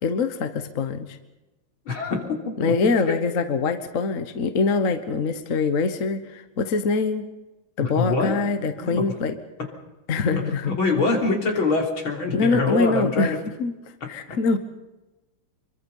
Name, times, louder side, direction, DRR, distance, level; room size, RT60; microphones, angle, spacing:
voice 1, 0.0-1.2 2.6-7.3 7.8-9.4 10.1-10.7 12.3-13.7 14.1-14.6, left 4 dB, 45° left, 9 dB, 1.5 m, -24 dB
voice 2, 1.9-3.2 7.8-8.3 8.8-9.0 10.3-13.4 14.0-14.1, left 3 dB, 80° left, 1 dB, 4.3 m, -25 dB
25.5 x 23.5 x 5.5 m, 1.0 s
omnidirectional pair, 2.2 m